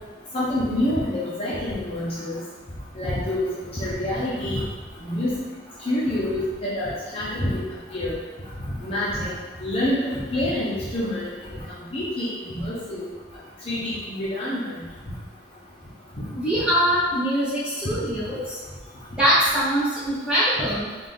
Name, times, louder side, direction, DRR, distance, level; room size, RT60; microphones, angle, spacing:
voice 1, 0.3-2.4 3.0-3.4 3.8-4.6 5.0-5.3 5.9-7.6 7.9-8.2 8.8-9.3 9.6-11.2 11.9-13.1 13.7-14.8 17.8-18.0, left 1 dB, 35° left, -8 dB, 0.8 m, -27 dB
voice 2, 16.3-18.6 19.2-20.9, equal, 5° right, -10 dB, 1.3 m, -22 dB
4.0 x 2.5 x 3.5 m, 1.3 s
head